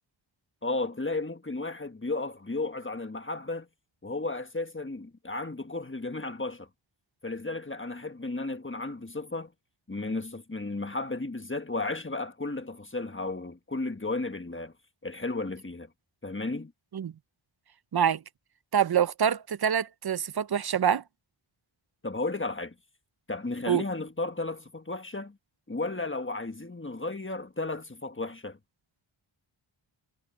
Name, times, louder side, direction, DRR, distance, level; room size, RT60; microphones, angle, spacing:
voice 1, 0.6-3.7 4.0-6.7 7.2-9.5 9.9-14.7 15.0-15.9 16.2-16.7 22.0-22.7 23.3-25.4 25.7-28.6, left 2 dB, 25° left, 1.4 m, -34 dB
voice 2, 17.9-18.2 18.7-21.0 23.7-23.8, right 8 dB, 50° right, 0.6 m, -25 dB
wide cardioid pair, 75°, 49 cm